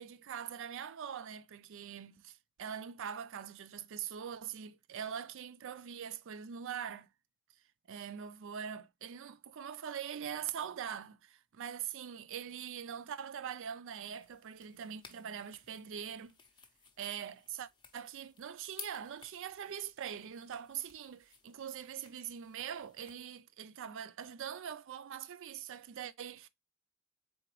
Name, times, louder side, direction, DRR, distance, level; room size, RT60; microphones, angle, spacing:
voice 1, 0.0-7.1 7.9-16.3 17.0-26.5, right 8 dB, 60° right, 0.4 m, -43 dB
sound 1, 14.2-23.2, left 5 dB, 20° left, 0.6 m, -56 dB
3.8 x 3.8 x 3.0 m
head